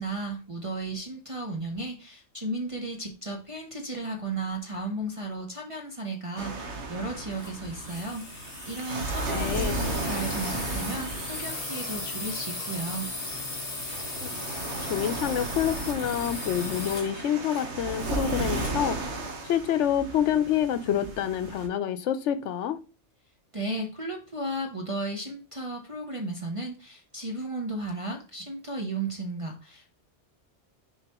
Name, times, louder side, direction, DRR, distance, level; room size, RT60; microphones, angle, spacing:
voice 1, 0.0-13.1 23.5-30.0, right 2 dB, 30° right, 0.9 m, -34 dB
sound 1, 6.4-21.7, right 2 dB, 65° right, 1.4 m, -35 dB
sound 2, 7.3-18.9, left 2 dB, 30° left, 1.7 m, -37 dB
voice 2, 9.3-9.8 14.2-14.3 14.8-19.0 19.4-22.8, left 9 dB, 70° left, 0.9 m, -27 dB
6.7 x 4.7 x 3.0 m
omnidirectional pair, 1.3 m